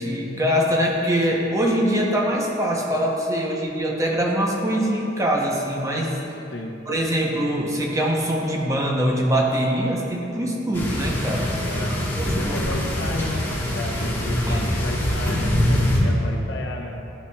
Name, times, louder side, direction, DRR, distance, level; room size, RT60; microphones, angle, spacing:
voice 1, 0.0-6.2 6.9-12.8 14.5-14.7, equal, 15° right, -1 dB, 0.7 m, -23 dB
sound 1, 10.7-16.0, left 1 dB, 10° left, 1.2 m, -24 dB
voice 2, 11.7-12.0 12.3-17.1, left 2 dB, 70° left, 2 dB, 0.7 m, -33 dB
11.0 x 5.7 x 2.3 m, 2.9 s
head